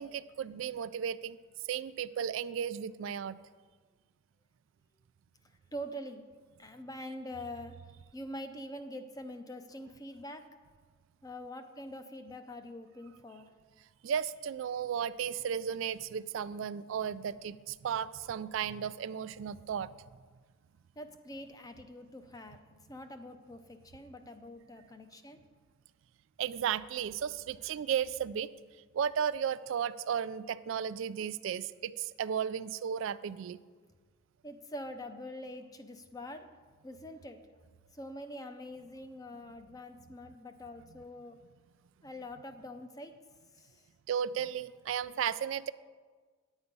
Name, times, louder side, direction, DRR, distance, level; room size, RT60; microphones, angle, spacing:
voice 1, 0.0-1.4 1.7-3.4 14.0-19.9 26.4-28.5 28.9-33.6 44.1-45.7, right 8 dB, 70° right, 15 dB, 0.3 m, -34 dB
voice 2, 5.7-6.2 6.6-7.7 8.1-10.5 11.2-13.5 21.0-22.6 22.9-25.4 34.4-36.5 36.8-37.4 37.9-41.4 42.0-43.1 43.5-43.9, left 1 dB, 20° left, 8 dB, 0.6 m, -44 dB
9.8 x 8.1 x 5.3 m, 1.5 s
head